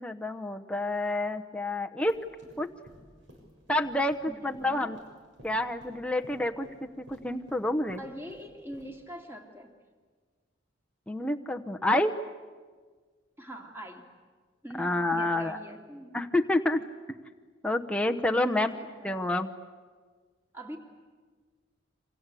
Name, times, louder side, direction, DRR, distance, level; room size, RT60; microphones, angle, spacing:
voice 1, 0.0-2.2 2.6-2.7 3.7-5.0 5.4-6.7 7.0-8.0 11.1-12.2 14.8-15.6 16.1-16.8 17.6-18.7 19.0-19.5, left 1 dB, 5° left, 3 dB, 0.9 m, -28 dB
sound 1, 2.1-8.9, equal, 65° right, 6.7 m, -54 dB
voice 2, 4.3-4.9 8.0-9.7 13.4-14.1 14.6-16.1 18.3-19.2 20.5-20.8, equal, 10° right, 3 dB, 2.7 m, -43 dB
28.0 x 25.5 x 8.4 m, 1.5 s
head